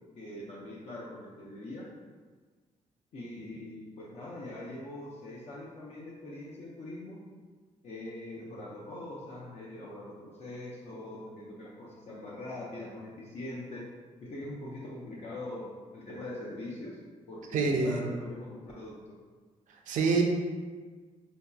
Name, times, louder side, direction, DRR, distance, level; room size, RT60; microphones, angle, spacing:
voice 1, 0.2-1.9 3.1-7.2 7.8-13.9 14.2-17.0 17.3-19.2, left 1 dB, 55° left, -5 dB, 0.5 m, -42 dB
voice 2, 17.5-18.0 19.9-20.2, right 4 dB, 85° right, 2 dB, 0.5 m, -26 dB
3.8 x 2.7 x 2.3 m, 1.5 s
cardioid pair, 135°, 13 cm